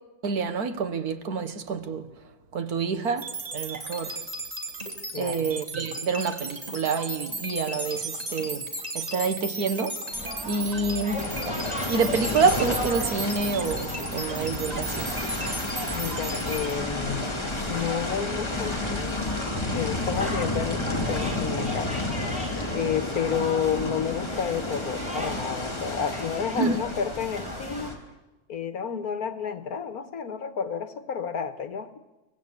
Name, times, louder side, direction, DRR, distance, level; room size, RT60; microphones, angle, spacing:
voice 1, 0.2-2.1 2.5-4.2 5.2-8.7 9.0-10.0 10.5-11.2 11.9-15.1 26.6-26.8, right 5 dB, 80° right, 1.8 m, -27 dB
sound 1, 3.2-16.7, right 1 dB, 25° right, 2.9 m, -35 dB
voice 2, 5.1-5.5 15.9-19.3 19.7-21.9 22.7-27.9 28.5-32.0, left 7 dB, 75° left, 1.8 m, -31 dB
sound 2, 10.1-27.9, equal, 5° right, 4.6 m, -37 dB
sound 3, 11.2-28.0, left 2 dB, 20° left, 2.5 m, -32 dB
23.5 x 18.0 x 8.4 m
omnidirectional pair, 1.6 m